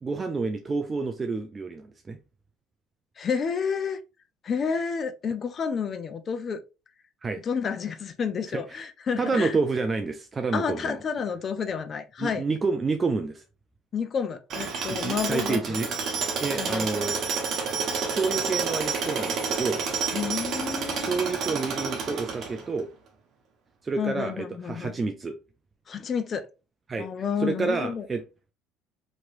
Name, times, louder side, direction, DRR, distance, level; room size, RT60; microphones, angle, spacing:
voice 1, 0.0-2.2 7.2-7.4 8.5-8.8 9.2-11.0 12.2-13.4 14.9-15.9 16.4-17.2 18.1-19.8 20.9-22.9 23.8-25.3 26.9-27.1 27.4-28.2, right 4 dB, 25° right, 0.4 m, -29 dB
voice 2, 3.2-4.0 4.4-6.6 7.4-9.6 10.5-12.4 13.9-15.8 16.5-16.9 20.1-21.2 24.0-24.9 25.9-26.5 27.0-28.1, left 6 dB, 35° left, 0.4 m, -30 dB
Tools, 14.5-22.8, right 5 dB, 50° right, 0.9 m, -29 dB
3.0 x 2.9 x 2.5 m
cardioid pair, 115°, 0 cm